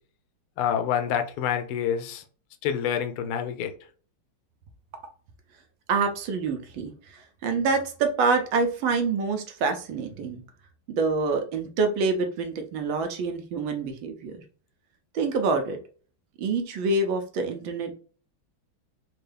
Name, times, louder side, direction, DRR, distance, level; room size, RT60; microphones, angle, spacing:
voice 1, 0.6-2.2 2.6-3.7, left 8 dB, 85° left, 1.5 m, -27 dB
voice 2, 5.9-10.4 10.9-14.4 15.1-15.8 16.4-17.9, right 4 dB, 75° right, 1.4 m, -26 dB
4.4 x 2.3 x 3.3 m
omnidirectional pair, 2.3 m